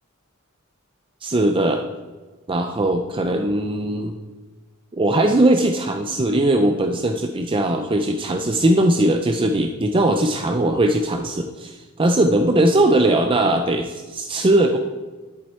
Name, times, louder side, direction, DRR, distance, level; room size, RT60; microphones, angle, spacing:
voice 1, 1.2-1.8 2.5-4.2 4.9-14.8, right 1 dB, 25° right, 5 dB, 0.5 m, -19 dB
11.0 x 8.4 x 4.4 m, 1.3 s
head